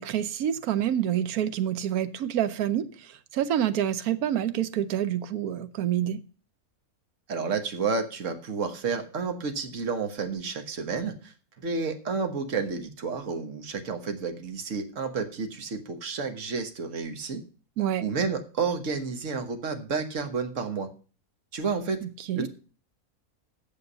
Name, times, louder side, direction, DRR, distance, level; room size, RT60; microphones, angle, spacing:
voice 1, 0.0-6.2 17.8-18.0 22.0-22.5, right 10 dB, 80° right, 1.3 m, -27 dB
voice 2, 7.3-17.4 18.0-20.9 21.5-22.1 22.3-22.5, right 5 dB, 60° right, 1.6 m, -31 dB
8.9 x 6.9 x 6.7 m
omnidirectional pair, 1.6 m